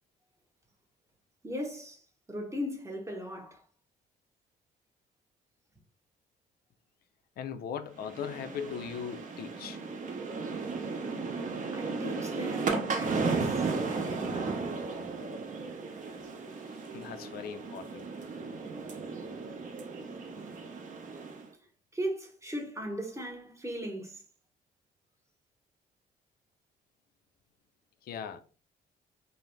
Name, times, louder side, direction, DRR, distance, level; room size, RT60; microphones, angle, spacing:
voice 1, 1.4-3.6 11.7-14.7 21.9-24.2, equal, 15° right, 0.9 m, -38 dB
voice 2, 7.4-9.8 16.6-18.0 28.0-28.4, left 7 dB, 60° left, 0.4 m, -39 dB
sound 1, 8.0-21.5, right 4 dB, 45° right, 0.6 m, -35 dB
2.6 x 2.0 x 3.1 m
supercardioid pair, 70°, 18 cm